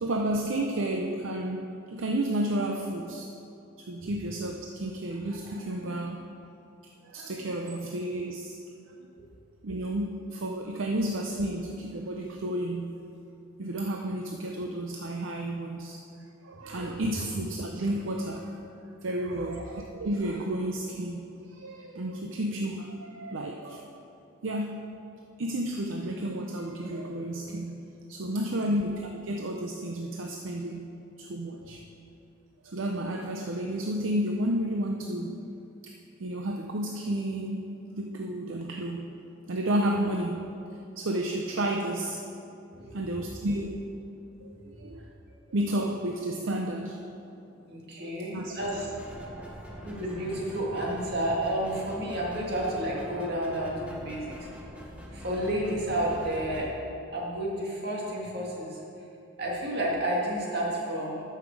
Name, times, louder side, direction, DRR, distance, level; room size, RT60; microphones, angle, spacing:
voice 1, 0.0-1.6 1.9-3.3 3.9-6.3 7.0-8.6 9.6-13.0 13.6-16.0 16.4-18.6 19.0-24.0 24.4-24.8 25.4-30.9 31.2-31.8 32.6-35.5 36.2-39.1 39.5-40.4 41.0-42.2 42.9-43.9 44.4-44.5 44.8-45.0 45.5-47.0 48.3-48.5 49.3-49.6, right 1 dB, 70° right, 2 dB, 0.6 m, -31 dB
voice 2, 44.5-44.9 47.7-48.9 49.8-54.5 55.1-56.7 57.1-58.8 59.4-61.2, right 1 dB, 50° right, -3 dB, 2.0 m, -31 dB
sound 1, 48.6-56.7, equal, 5° right, 1.1 m, -43 dB
13.0 x 5.8 x 4.7 m, 2.7 s
head